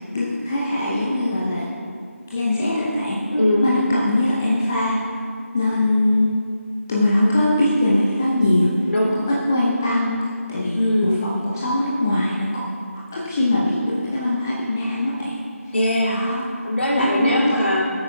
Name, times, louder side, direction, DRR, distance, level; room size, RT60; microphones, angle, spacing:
voice 1, 0.1-1.7 2.3-3.2 3.6-5.0 5.5-6.3 6.9-8.7 9.3-10.2 10.5-12.6 13.1-15.3 16.0-16.4 16.9-17.6, left 1 dB, 10° left, -6 dB, 0.4 m, -21 dB
voice 2, 3.3-3.7 8.9-9.2 10.7-11.2 15.7-17.8, left 1 dB, 55° left, -3 dB, 2.6 m, -21 dB
17.5 x 9.0 x 2.3 m, 2.3 s
figure-of-eight pair, 165°, 8 cm